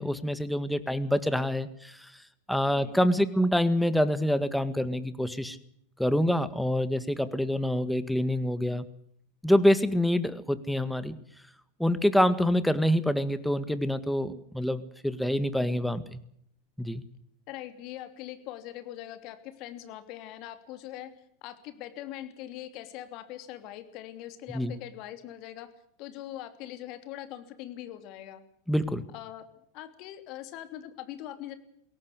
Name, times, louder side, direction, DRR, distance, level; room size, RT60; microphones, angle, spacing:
voice 1, 0.0-2.1 2.5-5.6 6.0-8.8 9.4-11.2 11.8-16.2 16.8-17.0 24.5-24.7 28.7-29.0, equal, ahead, 13 dB, 1.8 m, -26 dB
voice 2, 2.7-3.2 17.5-21.1 21.4-25.7 26.0-28.4 29.1-29.4 29.7-31.5, left 13 dB, 50° left, 10 dB, 2.9 m, -42 dB
23.0 x 18.0 x 8.3 m, 0.69 s
hypercardioid pair, 90°, 0 cm